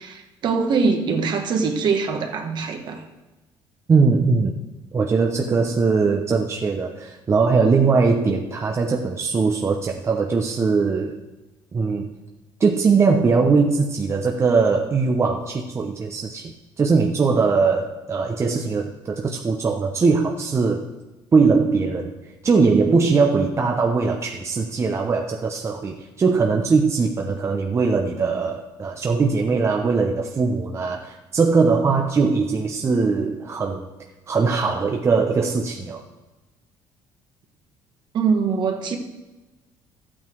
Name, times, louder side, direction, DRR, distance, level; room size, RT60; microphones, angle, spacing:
voice 1, 0.0-3.0 38.1-39.0, right 5 dB, 55° right, 5 dB, 1.6 m, -23 dB
voice 2, 3.9-4.6 4.9-11.2 11.7-12.1 12.6-20.9 21.3-22.1 22.4-33.9 34.3-36.0, right 4 dB, 30° right, 2 dB, 0.9 m, -20 dB
13.0 x 8.8 x 4.6 m, 1.1 s
cardioid pair, 110°, 9 cm